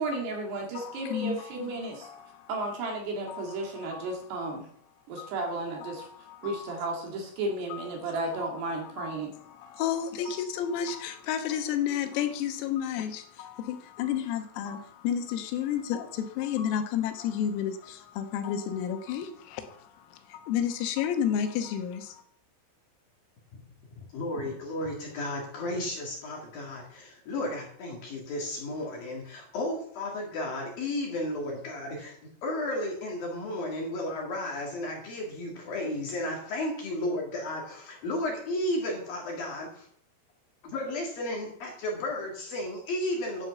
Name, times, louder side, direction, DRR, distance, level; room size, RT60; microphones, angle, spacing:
voice 1, 0.0-2.1 2.5-4.7 5.1-6.1 6.4-9.3, right 2 dB, 60° right, 1 dB, 3.6 m, -33 dB
voice 2, 0.8-2.7 3.3-4.2 5.2-5.3 5.8-6.8 7.7-22.2, left 9 dB, 85° left, 7 dB, 3.9 m, -32 dB
voice 3, 24.1-32.2 32.4-39.9 40.6-43.5, left 1 dB, 55° left, -1 dB, 3.1 m, -33 dB
10.5 x 7.4 x 6.8 m, 0.63 s
omnidirectional pair, 5.9 m